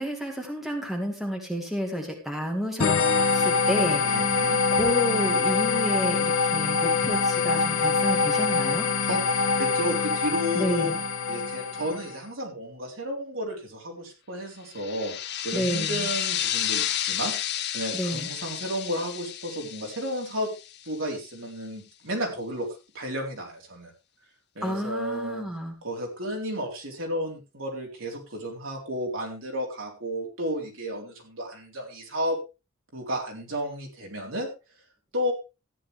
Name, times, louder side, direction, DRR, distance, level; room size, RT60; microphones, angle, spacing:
voice 1, 0.0-3.0 3.3-4.4 4.7-8.9 10.6-11.0 15.5-16.1 17.9-18.3 24.6-25.7, equal, ahead, 1 dB, 2.1 m, -30 dB
sound 1, 2.8-12.2, left 4 dB, 80° left, 1.0 m, -24 dB
voice 2, 4.0-4.6 9.0-10.9 11.3-15.2 15.4-20.5 20.9-22.7 22.9-23.9 24.6-25.5 25.8-32.4 32.9-34.5 35.1-35.3, equal, 65° right, 0 dB, 3.8 m, -32 dB
sound 2, 14.7-21.0, left 11 dB, 50° left, 0.8 m, -31 dB
14.0 x 9.9 x 3.5 m, 0.28 s
head